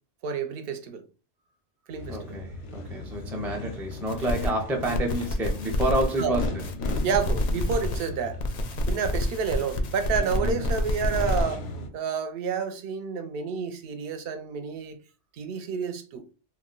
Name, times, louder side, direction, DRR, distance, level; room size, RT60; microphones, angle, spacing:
voice 1, 0.2-1.0 1.9-2.4 6.2-6.4 7.0-8.4 8.9-11.6 11.9-15.0 15.4-16.2, right 6 dB, 65° right, 0.7 m, -29 dB
sound 1, 1.9-11.9, left 2 dB, 90° left, 1.0 m, -38 dB
voice 2, 2.1-6.7 10.4-10.8, right 1 dB, 5° right, 0.3 m, -29 dB
sound 2, 4.1-4.5 4.8-8.1 8.4-11.4, left 1 dB, 60° left, 0.5 m, -28 dB
2.3 x 2.1 x 3.7 m
omnidirectional pair, 1.2 m